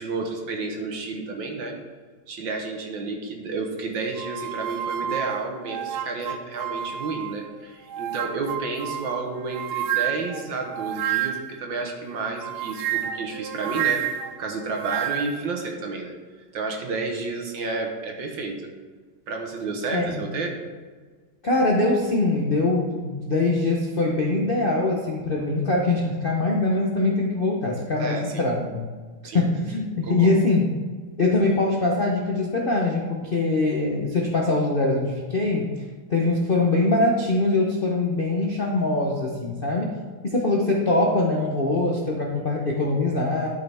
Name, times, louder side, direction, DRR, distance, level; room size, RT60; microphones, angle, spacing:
voice 1, 0.0-1.8 2.3-14.0 14.4-16.2 16.5-18.6 19.3-20.6 28.0-28.5 29.2-29.5 30.0-30.4, right 3 dB, 65° right, 2 dB, 1.8 m, -31 dB
sound 1, 4.2-7.4 7.9-11.6 12.4-15.5, right 10 dB, 90° right, 0.8 m, -30 dB
voice 2, 19.9-20.3 21.4-28.9 29.3-30.7 31.2-35.7 36.1-39.9 40.2-43.5, left 2 dB, 50° left, -2 dB, 0.6 m, -23 dB
12.0 x 5.7 x 3.4 m, 1.4 s
omnidirectional pair, 2.3 m